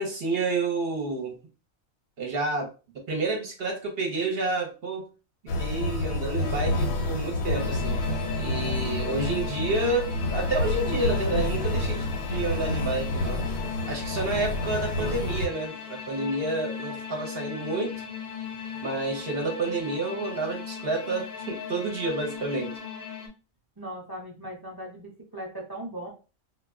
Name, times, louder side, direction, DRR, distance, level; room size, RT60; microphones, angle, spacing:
voice 1, 0.0-1.3 2.2-2.7 3.1-5.0 5.6-8.0 8.4-13.4 13.9-18.0 18.8-22.8, right 2 dB, 55° right, 1 dB, 0.8 m, -29 dB
sound 1, 5.5-15.5, left 1 dB, 90° left, 1.0 m, -29 dB
sound 2, 7.6-23.3, left 7 dB, 60° left, 0.3 m, -38 dB
voice 2, 23.8-26.1, right 1 dB, 25° right, -3 dB, 0.6 m, -38 dB
2.3 x 2.1 x 3.4 m, 0.33 s
omnidirectional pair, 1.4 m